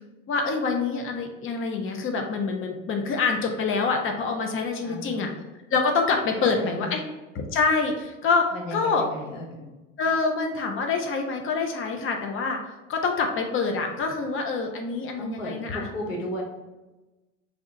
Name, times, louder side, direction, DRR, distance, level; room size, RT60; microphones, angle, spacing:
voice 1, 0.3-5.3 5.7-7.0 7.3-8.4 8.7-9.0 10.0-12.6 12.9-15.9, left 4 dB, 35° left, 3 dB, 0.7 m, -26 dB
voice 2, 4.8-5.3 6.4-7.0 8.5-9.7 15.2-16.4, equal, 90° left, -1 dB, 0.9 m, -35 dB
3.5 x 2.4 x 4.0 m, 1.1 s
hypercardioid pair, 75°, 38 cm